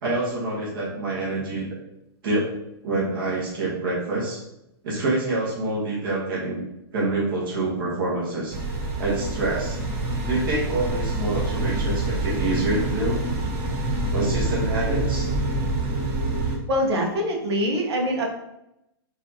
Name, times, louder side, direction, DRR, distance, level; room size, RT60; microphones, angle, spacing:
voice 1, 0.0-1.7 2.2-2.5 2.8-4.4 4.8-6.6 6.9-8.6 9.0-9.8 10.3-13.2 14.1-15.3, right 2 dB, 55° right, -5 dB, 1.3 m, -26 dB
sound 1, 8.5-16.6, right 2 dB, 35° right, 0.8 m, -26 dB
voice 2, 16.7-18.3, equal, 80° right, 0 dB, 1.0 m, -24 dB
4.7 x 2.6 x 2.8 m, 0.84 s
hypercardioid pair, 155°, 13 cm